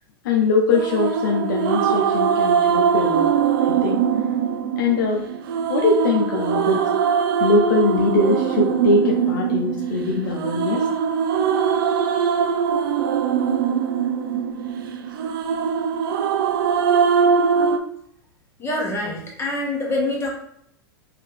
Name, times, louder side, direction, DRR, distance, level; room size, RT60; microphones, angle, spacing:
voice 1, 0.2-3.3 3.7-4.0 4.8-5.2 5.7-6.8 7.4-10.9, left 3 dB, 65° left, 0 dB, 0.6 m, -21 dB
sound 1, 0.7-17.8, right 7 dB, 70° right, 0.5 m, -21 dB
voice 2, 18.6-20.3, left 2 dB, 20° left, -3 dB, 1.4 m, -25 dB
3.3 x 2.7 x 3.5 m, 0.69 s
hypercardioid pair, 105°, 12 cm